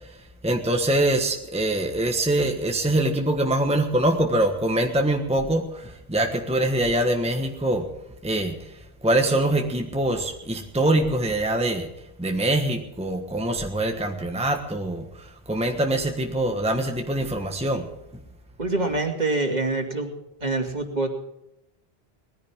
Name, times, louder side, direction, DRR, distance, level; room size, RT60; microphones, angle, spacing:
voice 1, 0.4-7.9 8.2-8.6 9.0-11.9 12.2-15.1 15.5-17.9, right 1 dB, 5° right, 3 dB, 1.3 m, -24 dB
voice 2, 18.6-20.1 20.4-21.1, right 2 dB, 40° right, 3 dB, 2.5 m, -25 dB
20.5 x 15.0 x 3.6 m, 0.87 s
omnidirectional pair, 1.1 m